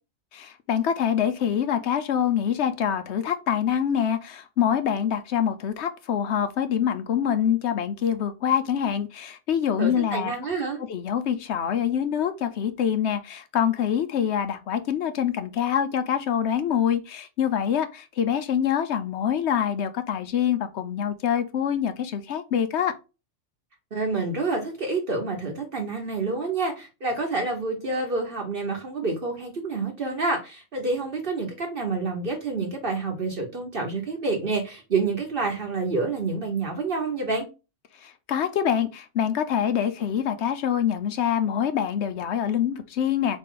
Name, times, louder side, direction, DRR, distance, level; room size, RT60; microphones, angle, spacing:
voice 1, 0.3-10.3 10.9-22.9 38.0-43.4, left 9 dB, 65° left, 0.9 m, -25 dB
voice 2, 9.8-10.8 23.9-37.5, right 3 dB, 45° right, 1.1 m, -28 dB
4.3 x 3.3 x 3.7 m
omnidirectional pair, 1.3 m